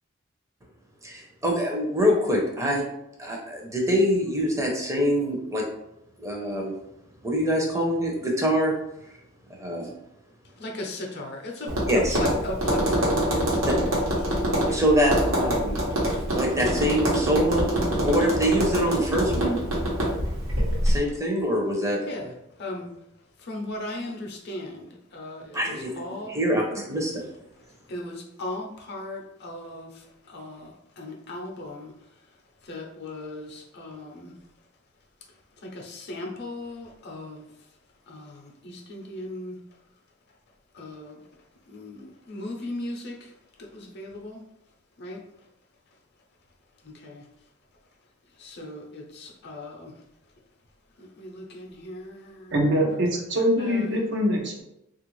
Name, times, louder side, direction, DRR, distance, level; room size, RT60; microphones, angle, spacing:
voice 1, 1.0-2.9 3.2-5.6 6.2-6.7 7.2-8.7 9.6-9.9 11.9-12.2 13.6-13.7 14.7-15.8 16.3-19.6 20.8-22.0 25.5-27.3, equal, 15° right, -1 dB, 0.7 m, -25 dB
voice 2, 10.6-11.7 12.2-13.8 22.1-22.3 22.6-22.9 23.4-26.4 27.9-31.9 32.6-34.4 35.6-37.4 38.1-39.6 40.7-41.2 41.7-43.3 43.6-44.4 45.0-45.2 46.8-47.2 48.4-49.9 51.0-52.5 53.6-53.9, left 1 dB, 55° left, 1 dB, 0.6 m, -37 dB
Tap, 11.7-21.0, equal, 90° right, 1.1 m, -25 dB
voice 3, 52.5-54.6, equal, 60° right, 1 dB, 0.7 m, -23 dB
3.3 x 2.4 x 3.1 m, 0.84 s
head